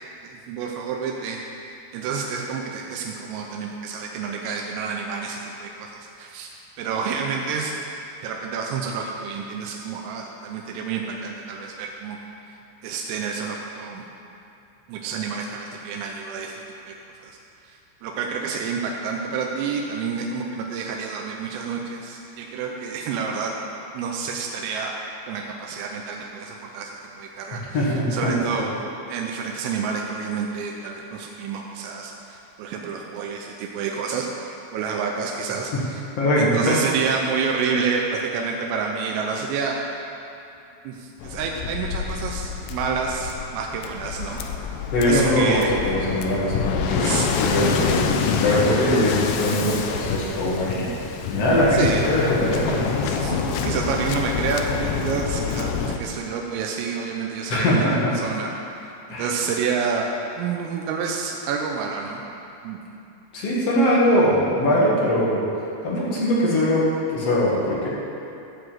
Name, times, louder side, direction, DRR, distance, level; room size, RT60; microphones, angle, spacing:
voice 1, 0.2-1.4 1.9-6.5 6.8-7.7 8.2-12.2 12.8-14.1 14.9-16.5 16.8-17.0 17.2-17.3 17.6-23.6 24.0-24.9 25.3-28.7 29.1-36.0 36.4-39.8 40.9-44.4 45.1-45.7 47.0-47.3 49.5-49.9 51.7-52.1 53.2-57.9 58.2-58.5 59.2-60.1 60.4-62.2 62.6-62.8, right 5 dB, 90° right, 0 dB, 3.4 m, -29 dB
voice 2, 27.7-28.7 36.2-36.7 44.9-53.2 57.5-58.1 59.1-59.3 63.3-65.4 65.8-67.9, left 1 dB, 70° left, -6 dB, 1.5 m, -21 dB
Waves surf, 41.2-56.0, left 7 dB, 90° left, 2.4 m, -27 dB
14.5 x 4.9 x 7.7 m, 2.7 s
omnidirectional pair, 5.7 m